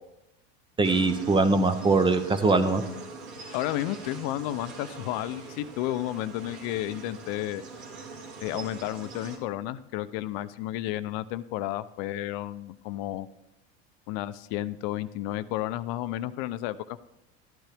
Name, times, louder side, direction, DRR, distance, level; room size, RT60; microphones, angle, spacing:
voice 1, 0.8-2.8, right 3 dB, 15° right, 10 dB, 0.6 m, -22 dB
sound 1, 0.8-9.4, right 4 dB, 75° right, 2.2 m, -43 dB
voice 2, 3.5-7.6 8.4-13.3 14.1-17.0, left 14 dB, 60° left, 14 dB, 0.6 m, -32 dB
13.0 x 9.1 x 3.4 m, 0.86 s
supercardioid pair, 115°, 33 cm